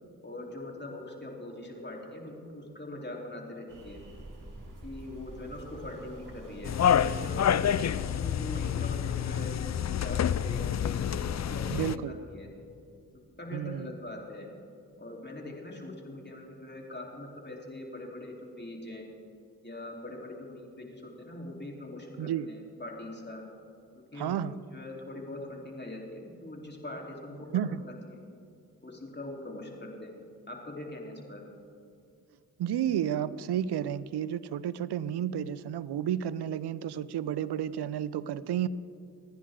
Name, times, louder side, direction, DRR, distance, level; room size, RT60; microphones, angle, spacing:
voice 1, 0.2-4.0 4.8-9.5 9.9-12.5 13.4-14.5 15.0-19.1 19.6-23.4 24.1-24.4 24.7-28.2 28.8-30.2 30.5-31.4, left 1 dB, 25° left, -1 dB, 3.5 m, -42 dB
sound 1, 3.7-9.5, right 1 dB, 50° right, 2.7 m, -46 dB
sound 2, 6.6-12.0, left 9 dB, 45° left, 0.5 m, -28 dB
voice 2, 11.7-12.1 13.5-13.9 22.2-22.5 24.1-24.6 27.5-27.8 32.6-38.7, right 10 dB, 80° right, 17 dB, 0.6 m, -31 dB
27.0 x 10.0 x 3.7 m, 2.5 s
supercardioid pair, 40°, 39 cm